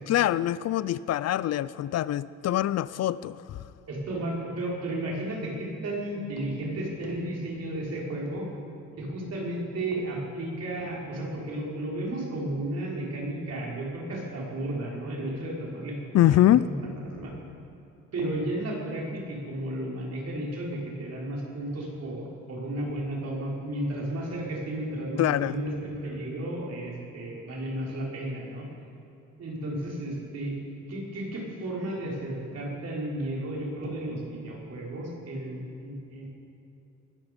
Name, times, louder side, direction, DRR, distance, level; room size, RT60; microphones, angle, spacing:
voice 1, 0.1-3.7 16.1-16.7 25.2-25.6, left 13 dB, 60° left, 0.5 m, -24 dB
voice 2, 3.9-8.5 9.0-17.3 18.1-28.7 29.4-30.6 30.9-36.3, right 1 dB, 55° right, 4.9 m, -33 dB
20.5 x 13.0 x 5.3 m
cardioid pair, 90°, 30 cm